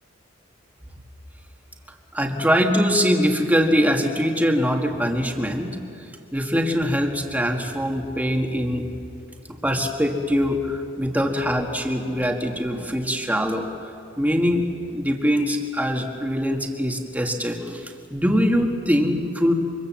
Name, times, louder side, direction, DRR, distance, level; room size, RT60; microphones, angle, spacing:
voice 1, 2.1-5.8 6.3-8.9 9.6-13.9 14.2-14.7 14.9-19.5, equal, 10° right, 2 dB, 1.8 m, -23 dB
25.0 x 24.0 x 7.5 m, 2.6 s
head